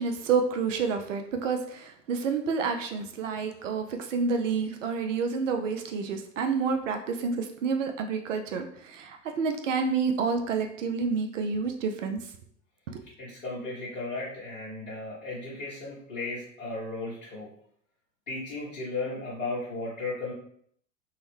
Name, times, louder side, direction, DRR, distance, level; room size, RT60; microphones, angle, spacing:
voice 1, 0.0-12.2 12.9-13.0, right 5 dB, 80° right, 5 dB, 0.5 m, -29 dB
voice 2, 13.2-17.5 18.3-20.3, left 3 dB, 80° left, -8 dB, 1.1 m, -35 dB
3.6 x 2.1 x 3.1 m, 0.65 s
hypercardioid pair, 85°, 37 cm